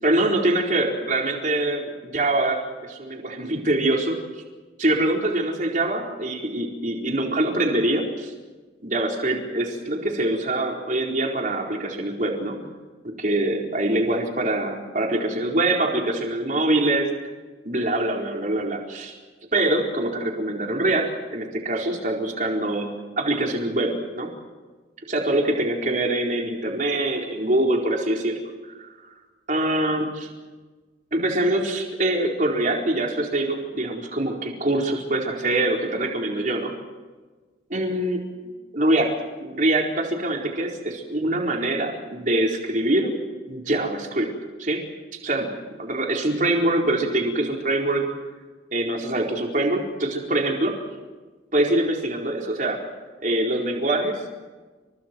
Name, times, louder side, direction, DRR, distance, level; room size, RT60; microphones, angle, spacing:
voice 1, 0.0-4.2 4.8-8.3 8.8-12.6 13.0-17.1 17.6-19.2 19.5-22.9 23.2-24.3 25.1-28.4 28.8-28.9 29.5-30.3 31.1-36.7 37.7-38.2 38.7-39.1 39.4-43.1 43.5-44.3 44.6-44.8 45.2-45.5 45.8-48.0 48.7-50.8 51.5-52.8 53.2-54.3, right 1 dB, 45° right, 0 dB, 4.4 m, -24 dB
30.0 x 26.5 x 4.6 m, 1.3 s
head